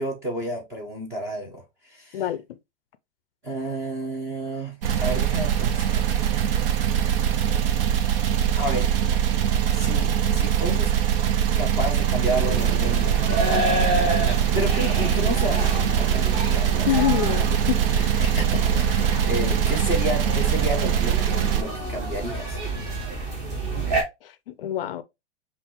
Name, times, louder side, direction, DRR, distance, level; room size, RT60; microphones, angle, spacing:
voice 1, 0.0-2.2 3.4-6.0 8.6-8.9 9.7-10.9 11.5-13.1 14.5-17.3 18.2-22.6, equal, 10° right, 0.5 m, -31 dB
voice 2, 2.1-2.6 16.9-18.2 24.2-25.0, left 12 dB, 55° left, 0.5 m, -27 dB
sound 1, 4.8-21.6, right 9 dB, 55° right, 0.6 m, -22 dB
sound 2, 12.2-24.0, right 1 dB, 25° right, 1.3 m, -29 dB
5.6 x 2.5 x 2.9 m
supercardioid pair, 170°, 35 cm